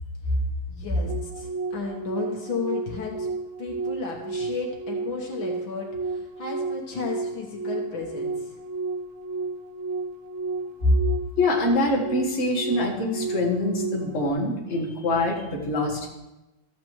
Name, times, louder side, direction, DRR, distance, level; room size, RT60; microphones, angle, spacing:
voice 1, 0.7-3.3 3.6-8.6, left 4 dB, 70° left, -1 dB, 1.9 m, -33 dB
sound 1, 1.1-14.3, right 3 dB, 75° right, 0.6 m, -32 dB
voice 2, 11.4-16.1, left 1 dB, 35° left, -3 dB, 1.7 m, -25 dB
14.0 x 7.6 x 3.1 m, 1.0 s
omnidirectional pair, 2.3 m